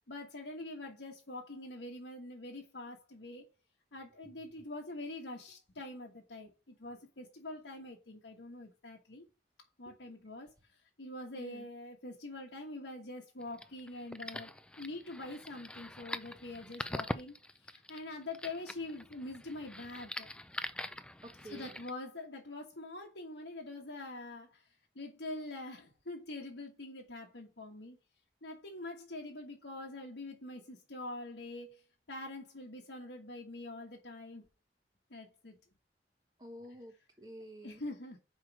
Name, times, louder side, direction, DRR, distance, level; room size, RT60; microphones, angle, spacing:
voice 1, 0.1-3.5 3.9-9.3 9.8-20.3 21.5-24.7 24.9-28.0 28.4-31.8 32.1-34.5 35.1-35.6 37.6-38.2, left 2 dB, 90° left, 1.4 m, -45 dB
voice 2, 11.3-11.7 21.2-21.7 36.4-37.8, right 1 dB, 20° right, 0.9 m, -50 dB
sound 1, 13.4-21.9, left 1 dB, 5° left, 0.4 m, -43 dB
5.7 x 4.7 x 6.2 m
head